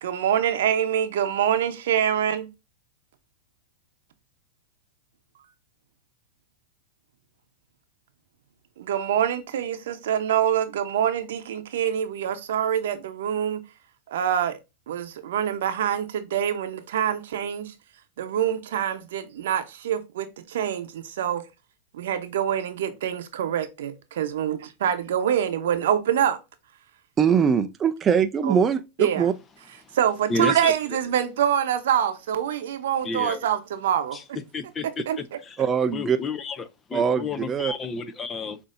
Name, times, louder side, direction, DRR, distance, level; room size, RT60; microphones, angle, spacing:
voice 1, 0.0-2.5 8.8-13.6 14.1-14.6 14.9-17.7 18.2-21.5 21.9-26.4 28.4-28.6 29.0-29.3 29.9-34.2 35.1-35.2, right 9 dB, 75° right, 0.8 m, -25 dB
voice 2, 27.2-29.3 35.6-36.2 36.9-37.7, right 7 dB, 25° right, 0.4 m, -22 dB
voice 3, 30.3-31.0 33.0-33.4 34.1-34.2 34.5-35.0 35.4-35.7 35.9-38.6, left 4 dB, 25° left, 0.6 m, -31 dB
6.6 x 2.7 x 2.6 m
hypercardioid pair, 120°, 0 cm